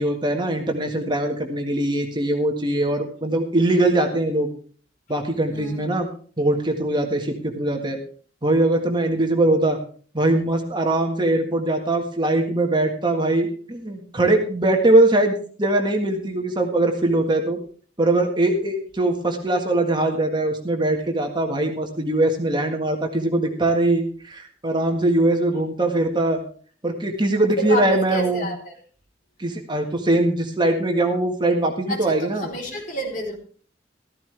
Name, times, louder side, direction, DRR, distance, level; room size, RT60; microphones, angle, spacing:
voice 1, 0.0-4.5 5.1-6.1 6.4-8.0 8.4-9.8 10.1-17.6 18.0-26.4 26.8-28.5 29.4-32.5, right 2 dB, 25° right, 3 dB, 1.8 m, -21 dB
voice 2, 5.5-6.0 27.6-28.7 31.9-33.3, equal, 45° left, 0 dB, 3.8 m, -30 dB
14.5 x 14.0 x 3.4 m, 0.43 s
head